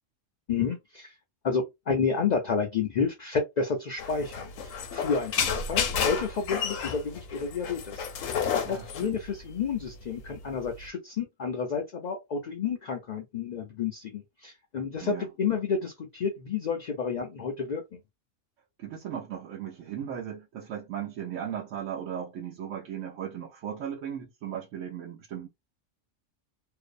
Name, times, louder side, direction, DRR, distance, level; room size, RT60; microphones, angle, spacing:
voice 1, 0.5-1.1 1.4-8.0 8.7-18.0, left 5 dB, 65° left, 0.4 m, -30 dB
sound 1, 4.0-10.9, left 7 dB, 85° left, 0.9 m, -31 dB
voice 2, 8.6-9.1 15.0-15.3 18.8-25.5, right 9 dB, 80° right, 1.0 m, -37 dB
2.6 x 2.0 x 2.5 m
omnidirectional pair, 1.3 m